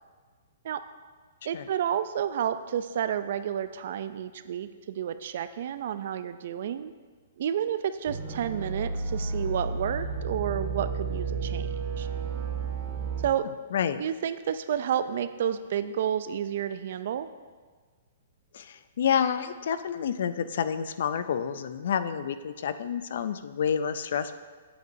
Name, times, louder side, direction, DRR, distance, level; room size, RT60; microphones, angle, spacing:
voice 1, 1.4-6.9 7.4-12.1 13.2-13.5 14.0-17.3, right 9 dB, 60° right, 12 dB, 0.4 m, -30 dB
sound 1, 8.1-13.3, right 4 dB, 40° right, 1.1 m, -32 dB
voice 2, 13.7-14.0 18.5-24.3, left 8 dB, 65° left, 12 dB, 0.4 m, -29 dB
7.9 x 7.8 x 2.6 m, 1.5 s
hypercardioid pair, 155°, 0 cm